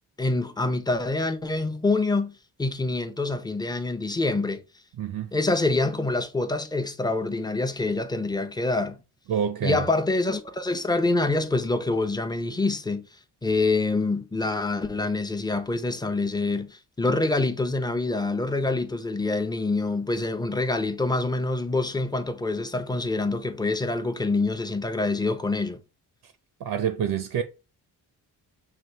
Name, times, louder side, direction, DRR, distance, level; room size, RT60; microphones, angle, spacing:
voice 1, 0.2-4.6 5.3-9.0 9.6-13.1 13.4-25.8, left 2 dB, 10° left, 0.6 m, -26 dB
voice 2, 5.0-5.3 9.3-9.9 26.6-27.4, right 8 dB, 70° right, 0.7 m, -27 dB
5.9 x 2.4 x 3.3 m
cardioid pair, 70°, 40 cm